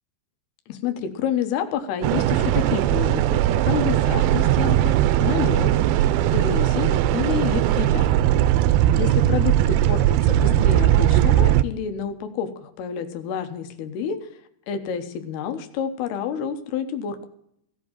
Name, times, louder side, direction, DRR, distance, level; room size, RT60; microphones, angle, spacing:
voice 1, 0.7-5.7 6.3-8.1 8.9-14.2 14.7-17.3, left 8 dB, 85° left, 7 dB, 3.2 m, -29 dB
sound 1, 2.0-11.6, right 12 dB, 80° right, 2.4 m, -19 dB
16.5 x 6.3 x 8.8 m, 0.72 s
omnidirectional pair, 4.6 m